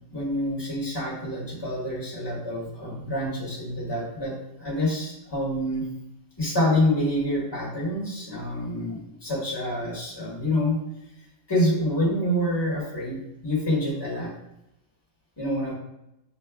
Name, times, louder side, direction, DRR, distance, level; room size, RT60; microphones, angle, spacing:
voice 1, 0.1-5.9 6.4-10.8 11.5-14.3 15.4-15.7, left 1 dB, 15° left, -5 dB, 1.3 m, -27 dB
6.4 x 2.4 x 2.3 m, 0.87 s
omnidirectional pair, 1.6 m